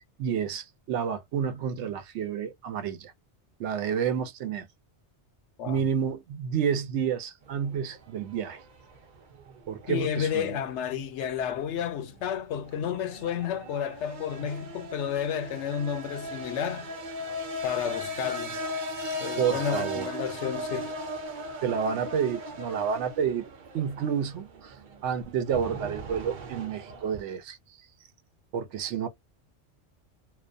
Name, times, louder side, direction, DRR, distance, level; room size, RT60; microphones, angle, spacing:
voice 1, 0.0-3.1 3.6-4.7 5.7-8.6 9.7-10.6 19.4-20.1 21.6-23.5 23.7-24.7 25.0-27.6 28.5-29.1, right 7 dB, 80° right, 0.9 m, -30 dB
sound 1, 7.4-27.2, equal, 50° right, 0.7 m, -39 dB
voice 2, 9.9-16.9 17.6-18.6 19.0-20.9, left 8 dB, 75° left, 0.9 m, -31 dB
2.3 x 2.2 x 2.5 m
omnidirectional pair, 1.2 m